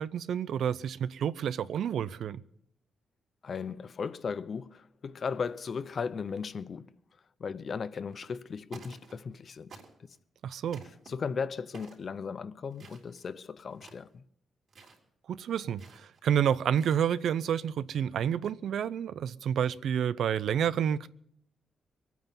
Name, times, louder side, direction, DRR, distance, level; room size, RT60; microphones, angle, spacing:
voice 1, 0.0-2.4 10.4-10.8 15.3-21.1, right 9 dB, 70° right, 0.5 m, -29 dB
voice 2, 3.4-7.0 7.4-10.2 11.1-14.2, left 5 dB, 45° left, 0.6 m, -37 dB
sound 1, 8.1-8.4 8.7-9.4 9.7-10.2 10.7-11.1 11.7-12.1 12.7-13.3 13.7-14.1 14.7-15.0 15.8-16.2 16.7-17.3, right 4 dB, 55° right, 3.7 m, -52 dB
23.0 x 9.3 x 5.5 m
cardioid pair, 120°, 0 cm